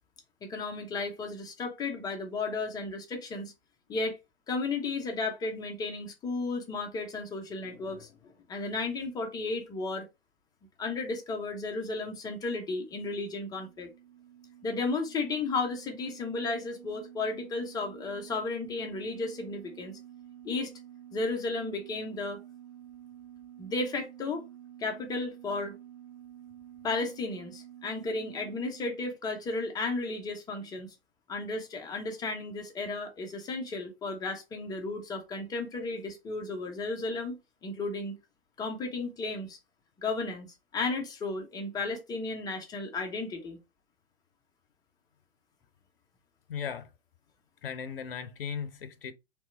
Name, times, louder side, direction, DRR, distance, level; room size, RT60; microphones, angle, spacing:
voice 1, 0.4-3.5 3.9-4.2 4.5-8.1 8.5-10.1 10.8-13.9 14.6-20.0 20.4-20.7 21.1-22.4 23.6-24.4 24.8-25.7 26.8-30.9 31.3-38.2 38.6-39.6 40.0-43.6, left 3 dB, 10° left, 0.8 m, -34 dB
sound 1, 12.7-28.9, right 11 dB, 45° right, 0.9 m, -50 dB
voice 2, 46.5-46.9 47.6-49.1, left 7 dB, 60° left, 0.7 m, -37 dB
4.6 x 3.4 x 3.2 m
figure-of-eight pair, 110°, 32 cm